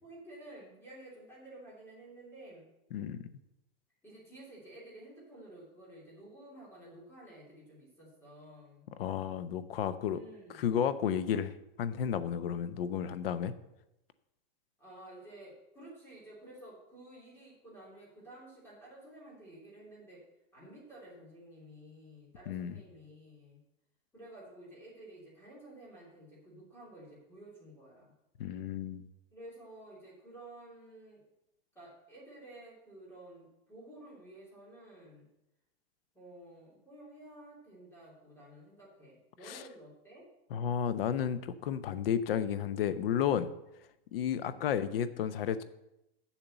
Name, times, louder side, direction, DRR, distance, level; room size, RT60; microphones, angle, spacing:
voice 1, 0.0-2.7 4.0-8.9 10.1-10.6 14.8-20.2 20.5-23.6 24.1-28.1 29.3-31.2 31.7-35.3 36.1-40.2 44.4-44.8, right 1 dB, 5° left, -5 dB, 3.0 m, -52 dB
voice 2, 2.9-3.2 9.0-10.2 10.5-11.5 11.8-13.5 22.5-22.8 28.4-29.1 39.5-39.6 40.5-43.5 44.1-45.6, left 8 dB, 65° left, 13 dB, 0.8 m, -32 dB
7.2 x 6.7 x 7.9 m, 0.89 s
supercardioid pair, 175°, 31 cm